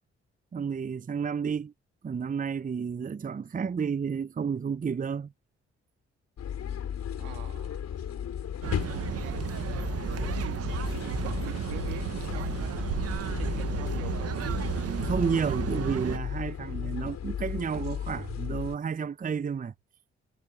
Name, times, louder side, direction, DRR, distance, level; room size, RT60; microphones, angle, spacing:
voice 1, 0.5-1.7 2.0-5.3 15.0-19.7, right 6 dB, 30° right, 0.7 m, -31 dB
sound 1, 6.4-18.8, left 9 dB, 65° left, 5.1 m, -35 dB
voice 2, 7.2-7.9 8.9-9.8 10.2-13.0 13.3-14.4, right 22 dB, 90° right, 3.1 m, -45 dB
sound 2, 8.6-16.2, right 9 dB, 55° right, 1.3 m, -33 dB
hypercardioid pair, 45°, 29 cm